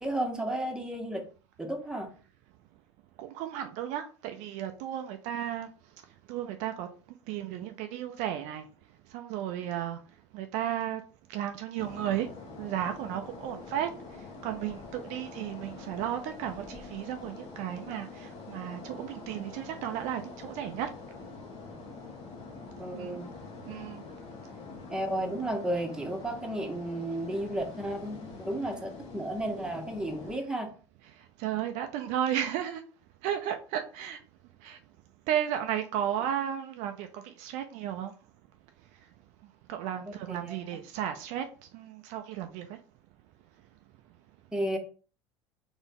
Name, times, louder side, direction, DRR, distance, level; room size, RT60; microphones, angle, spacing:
voice 1, 0.0-1.2 1.6-2.1 22.8-23.3 24.9-30.7 40.3-40.6 44.5-44.8, right 1 dB, 5° right, 1.2 m, -33 dB
voice 2, 3.2-5.7 6.3-6.9 7.3-8.6 9.1-10.0 10.3-11.0 11.3-12.3 12.6-13.9 14.4-20.9 22.9-23.2 23.7-24.0 31.4-32.8 33.2-34.2 34.6-34.8 35.3-38.1 39.7-41.4 41.7-42.7, right 10 dB, 60° right, 0.6 m, -34 dB
sound 1, 11.8-30.4, left 4 dB, 50° left, 1.4 m, -45 dB
4.0 x 3.5 x 3.8 m
hypercardioid pair, 70°, 14 cm